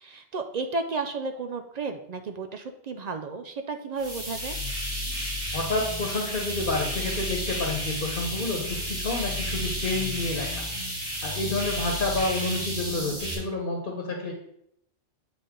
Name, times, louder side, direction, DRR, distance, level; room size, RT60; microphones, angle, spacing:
voice 1, 0.0-4.5, right 3 dB, 70° right, 7 dB, 0.4 m, -33 dB
sound 1, 4.0-13.3, equal, 45° right, 2.8 m, -32 dB
voice 2, 5.5-10.6 11.1-14.3, left 2 dB, 45° left, 1 dB, 1.2 m, -29 dB
8.5 x 4.0 x 3.7 m, 0.75 s
omnidirectional pair, 1.2 m